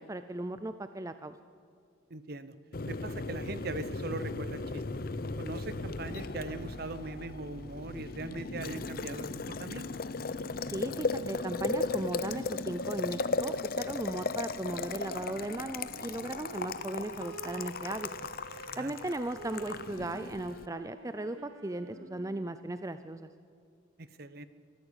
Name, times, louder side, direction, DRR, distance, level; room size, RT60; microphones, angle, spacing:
voice 1, 0.0-1.4 10.7-18.1 18.8-23.3, right 1 dB, 15° right, 11 dB, 0.4 m, -37 dB
voice 2, 2.1-2.5 2.8-4.8 5.4-9.9 18.7-19.2 24.0-24.5, right 2 dB, 50° right, 13 dB, 0.9 m, -40 dB
Boiling, 2.7-20.7, left 3 dB, 45° left, 0.7 m, -36 dB
sound 1, 4.9-10.2, equal, 5° left, 2.4 m, -50 dB
Wind instrument woodwind instrument, 14.6-22.6, right 3 dB, 80° right, 1.5 m, -48 dB
23.5 x 14.0 x 8.1 m, 2.2 s
head